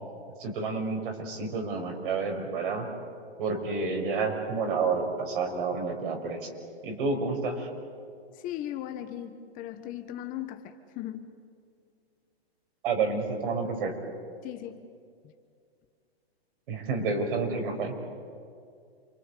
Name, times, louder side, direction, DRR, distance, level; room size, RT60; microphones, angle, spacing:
voice 1, 0.4-2.9 3.4-6.5 6.8-7.7 12.8-13.9 16.7-17.9, right 4 dB, 55° right, 3 dB, 5.9 m, -29 dB
voice 2, 8.3-11.3 14.4-14.8, left 12 dB, 25° left, 7 dB, 1.2 m, -38 dB
28.0 x 24.0 x 8.4 m, 2.3 s
hypercardioid pair, 140°, 32 cm